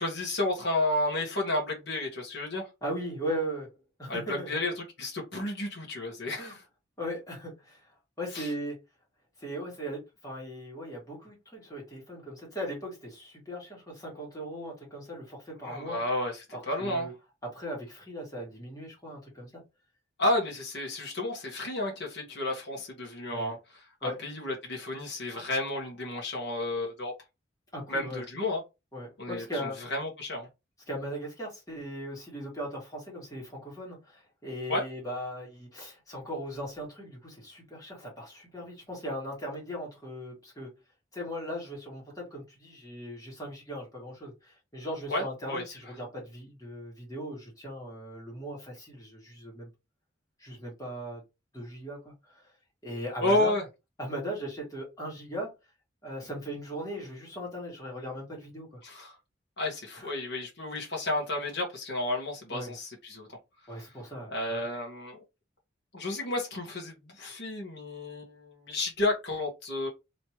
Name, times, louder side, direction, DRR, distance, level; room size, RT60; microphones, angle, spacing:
voice 1, 0.0-2.7 4.1-4.7 5.0-6.6 8.3-8.5 15.6-16.4 16.7-17.1 20.2-23.6 24.0-27.1 27.9-28.6 29.2-30.5 34.7-34.8 45.1-45.2 45.5-45.6 53.2-53.6 58.8-59.1 59.6-63.3 64.3-65.2 65.9-69.9, left 2 dB, 60° left, 1.3 m, -31 dB
voice 2, 2.8-4.6 6.4-6.6 7.0-8.8 9.4-16.0 16.5-17.1 17.4-19.6 23.3-23.5 24.0-24.2 27.7-28.2 28.9-29.8 30.9-40.7 41.1-49.7 50.4-51.2 51.5-52.5 52.8-53.5 54.0-55.5 56.0-58.8 60.0-60.1 62.5-62.8 63.7-64.6, equal, 20° left, 1.8 m, -38 dB
3.1 x 3.1 x 2.9 m
head